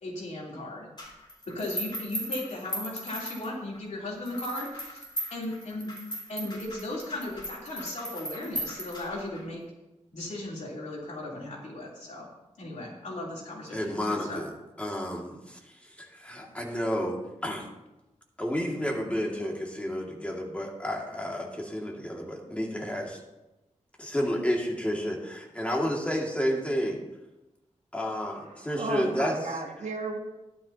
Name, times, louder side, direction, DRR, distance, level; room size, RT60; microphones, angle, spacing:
voice 1, 0.0-0.9 1.5-5.0 5.3-5.9 6.3-9.6 10.1-12.3 12.6-14.4, left 1 dB, 75° left, -4 dB, 3.4 m, -36 dB
sound 1, 1.0-3.8 4.3-9.4, equal, 35° left, 4.0 m, -37 dB
voice 2, 13.7-14.5 14.8-17.7 18.4-23.2 24.0-27.0 27.9-29.6, equal, 10° left, -1 dB, 2.2 m, -31 dB
voice 3, 28.7-30.2, right 2 dB, 70° right, 1 dB, 1.9 m, -33 dB
13.0 x 11.5 x 2.9 m, 1.0 s
wide cardioid pair, 100°, 12 cm